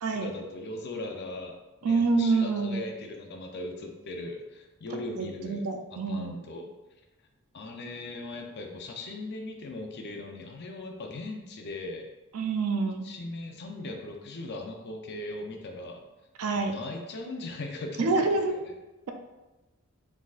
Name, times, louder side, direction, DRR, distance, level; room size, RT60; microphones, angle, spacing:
voice 1, 0.1-1.5 1.8-6.7 7.5-12.1 13.0-16.0 16.5-18.7, left 2 dB, 50° left, 2 dB, 0.5 m, -39 dB
voice 2, 1.8-2.8 5.2-6.4 12.3-13.0 16.4-16.7 18.0-18.5, right 3 dB, 90° right, 5 dB, 0.5 m, -27 dB
4.2 x 3.7 x 2.4 m, 1.1 s
head